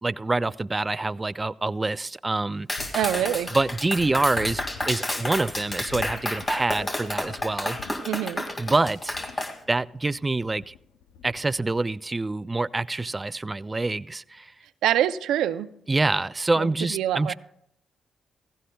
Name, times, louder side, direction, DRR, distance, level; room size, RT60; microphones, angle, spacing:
voice 1, 0.0-2.7 3.5-7.8 8.6-10.7 11.2-14.5 15.9-17.3, right 2 dB, 25° right, 15 dB, 0.3 m, -26 dB
Clapping, 2.7-9.5, left 1 dB, 25° left, 2.1 m, -31 dB
sound 1, 2.8-11.8, left 6 dB, 90° left, 0.6 m, -45 dB
voice 2, 2.9-3.5 8.0-8.5 14.8-15.7 16.6-17.3, right 11 dB, 85° right, 13 dB, 0.5 m, -25 dB
16.0 x 15.5 x 2.3 m, 0.74 s
cardioid pair, 65°, 0 cm